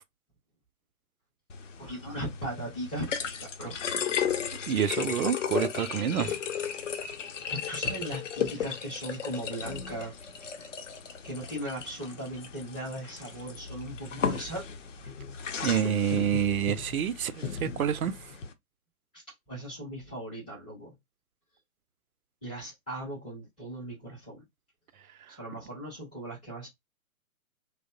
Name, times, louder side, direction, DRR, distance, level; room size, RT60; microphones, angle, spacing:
sound 1, 1.5-18.5, left 7 dB, 60° left, 0.6 m, -35 dB
voice 1, 1.8-3.9 6.2-6.4 7.5-10.5 11.2-14.6 19.5-20.9 22.4-24.4 25.4-26.7, right 1 dB, 5° left, 0.4 m, -38 dB
voice 2, 4.7-6.3 15.6-18.2 25.3-25.4, right 8 dB, 75° right, 0.5 m, -28 dB
2.8 x 2.0 x 2.4 m
figure-of-eight pair, 130°, 44 cm